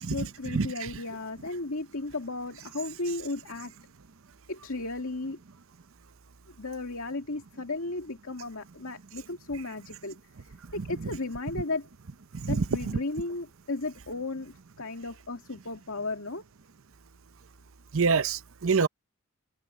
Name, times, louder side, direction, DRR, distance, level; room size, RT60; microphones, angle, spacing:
voice 1, 0.0-3.7 4.5-5.4 6.6-11.9 12.5-16.4, left 2 dB, 70° left, 2.3 m, -35 dB
voice 2, 12.3-13.0 17.9-18.9, right 4 dB, 65° right, 0.7 m, -26 dB
head